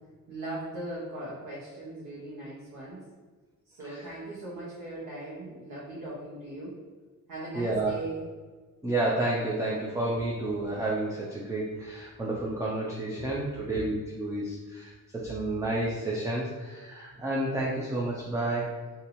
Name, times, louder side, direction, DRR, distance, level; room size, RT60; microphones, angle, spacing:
voice 1, 0.3-3.0 3.7-6.8 7.3-8.3 13.1-13.3 13.7-13.8, right 2 dB, 65° right, -7 dB, 1.0 m, -39 dB
voice 2, 3.8-4.1 7.5-7.9 8.8-18.8, right 2 dB, 10° right, -4 dB, 0.4 m, -30 dB
2.8 x 2.6 x 4.1 m, 1.4 s
cardioid pair, 140°, 33 cm